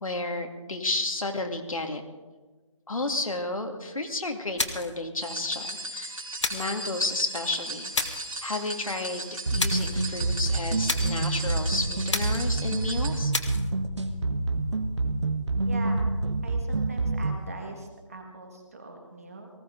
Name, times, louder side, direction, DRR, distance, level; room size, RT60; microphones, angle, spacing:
voice 1, 0.0-2.0 2.9-6.1 6.5-7.9 8.4-13.3, left 2 dB, 85° left, 4 dB, 2.1 m, -32 dB
sound 1, 4.6-5.0 6.4-6.8 7.9-8.3 9.6-10.0 10.9-11.2 12.1-12.5 13.3-13.7, left 3 dB, 60° left, 1.5 m, -30 dB
sound 2, 5.2-13.2, right 2 dB, 85° right, 3.7 m, -37 dB
sound 3, 9.5-17.5, right 2 dB, 55° right, 1.3 m, -27 dB
voice 2, 15.6-16.1 16.4-19.5, right 3 dB, 25° right, 2 dB, 1.9 m, -41 dB
19.0 x 16.5 x 3.8 m, 1.3 s
figure-of-eight pair, 180°, 17 cm